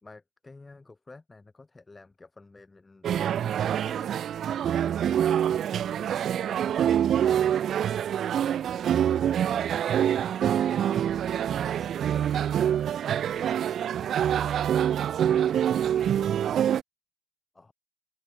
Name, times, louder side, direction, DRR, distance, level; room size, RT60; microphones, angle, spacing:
voice 1, 0.0-4.2 4.7-6.7 17.5-17.7, left 3 dB, 10° left, 2.2 m, -51 dB
sound 1, 3.0-16.8, right 9 dB, 40° right, 0.5 m, -26 dB
voice 2, 8.0-8.1, right 1 dB, 5° right, 5.7 m, -55 dB
cardioid pair, 160°, 0 cm